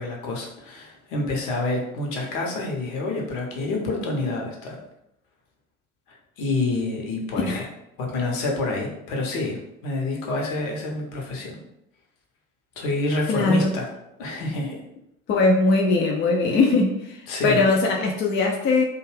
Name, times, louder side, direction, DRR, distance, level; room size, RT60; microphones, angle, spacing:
voice 1, 0.0-4.8 6.1-7.7 8.0-9.6 9.8-11.6 12.8-13.9 14.2-14.7 17.3-17.6, left 2 dB, 55° left, 0 dB, 0.9 m, -27 dB
voice 2, 13.3-13.7 15.3-18.8, left 3 dB, 30° left, -1 dB, 0.4 m, -20 dB
2.5 x 2.3 x 3.2 m, 0.84 s
figure-of-eight pair, 65°, 41 cm